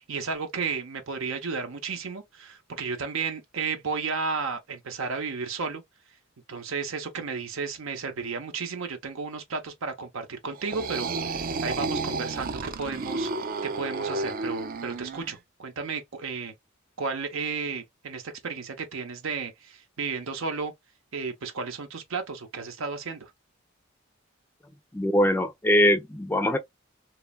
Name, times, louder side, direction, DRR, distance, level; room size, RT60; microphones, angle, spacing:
voice 1, 0.0-5.8 6.5-16.5 17.0-20.7 21.1-23.3, right 5 dB, 80° right, 0.7 m, -33 dB
sound 1, 10.5-15.4, right 3 dB, 45° right, 0.4 m, -32 dB
voice 2, 24.9-26.6, equal, 10° left, 0.4 m, -22 dB
3.1 x 2.2 x 2.2 m
head